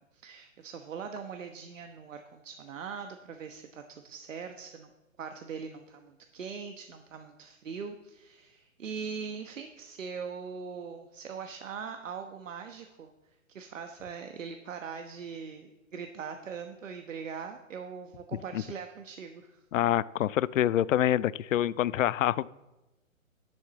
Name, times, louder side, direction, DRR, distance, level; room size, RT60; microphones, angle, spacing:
voice 1, 0.0-4.9 5.2-13.1 13.5-19.6, right 6 dB, 65° right, 6 dB, 1.2 m, -41 dB
voice 2, 19.7-22.5, left 12 dB, 70° left, 20 dB, 0.5 m, -26 dB
11.5 x 7.2 x 7.3 m, 1.0 s
hypercardioid pair, 155°, 41 cm